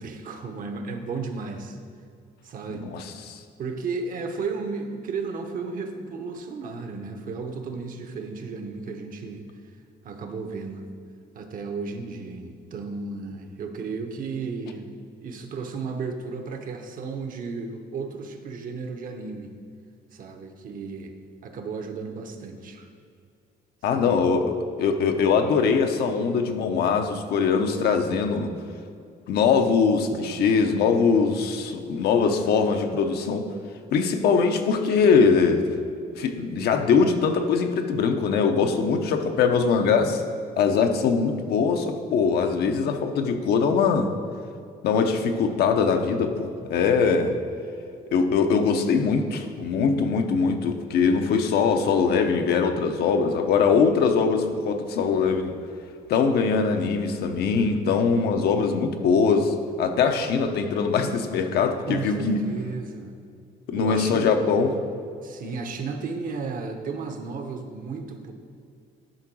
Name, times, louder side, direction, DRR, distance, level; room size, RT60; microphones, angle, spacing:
voice 1, 0.0-1.8 2.4-2.9 3.6-9.4 10.0-10.9 11.3-15.0 15.2-19.5 20.1-21.1 21.4-22.9 23.9-24.2 61.9-63.1 63.8-64.3 65.2-68.3, right 4 dB, 55° right, 5 dB, 1.0 m, -34 dB
voice 2, 2.7-3.4 23.8-28.5 29.3-33.4 33.9-35.6 36.2-40.2 40.6-44.1 44.8-47.3 48.1-55.5 56.1-62.4 63.7-64.8, left 5 dB, 70° left, 5 dB, 0.8 m, -22 dB
10.5 x 3.8 x 6.2 m, 2.3 s
cardioid pair, 110°, 17 cm